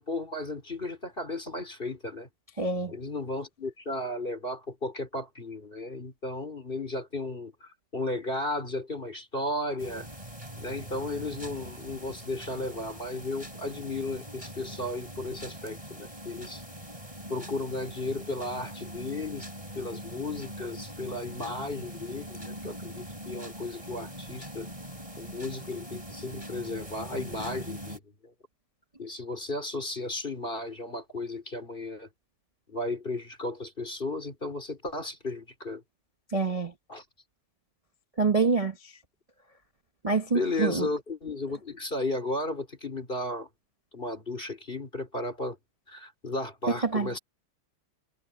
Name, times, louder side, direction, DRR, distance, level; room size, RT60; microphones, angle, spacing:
voice 1, 0.0-2.3 2.9-10.1 10.6-16.6 17.3-19.5 19.7-24.7 25.2-28.0 29.0-32.1 32.7-35.8 36.9-37.0 40.3-43.5 43.9-45.6 45.9-47.2, left 2 dB, 25° left, 3.7 m, -34 dB
voice 2, 2.6-2.9 36.3-36.7 38.2-38.7 40.0-40.9 46.9-47.1, right 4 dB, 70° right, 0.3 m, -25 dB
sound 1, 9.8-28.0, equal, 15° right, 5.9 m, -42 dB
omnidirectional pair, 2.4 m